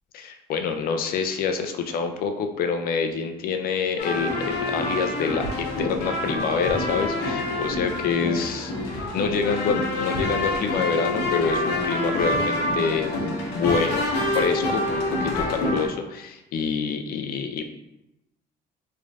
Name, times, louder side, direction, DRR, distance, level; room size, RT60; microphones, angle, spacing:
voice 1, 0.1-14.1 14.3-17.6, left 5 dB, 60° left, 6 dB, 0.4 m, -27 dB
sound 1, 4.0-15.9, left 1 dB, 80° left, 0.9 m, -27 dB
3.5 x 3.1 x 2.6 m, 0.90 s
cardioid pair, 110°, 17 cm